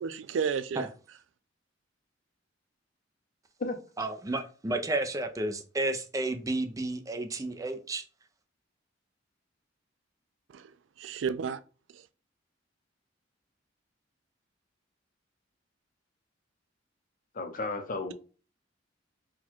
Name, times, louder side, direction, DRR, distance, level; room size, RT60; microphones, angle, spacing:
voice 1, 0.0-0.9 10.5-10.7 11.0-11.6 11.9-12.0, right 6 dB, 70° right, 0.3 m, -32 dB
voice 2, 4.0-8.0, right 2 dB, 20° right, 0.5 m, -32 dB
voice 3, 17.3-18.1, left 3 dB, 45° left, 0.7 m, -33 dB
4.4 x 2.3 x 4.3 m
head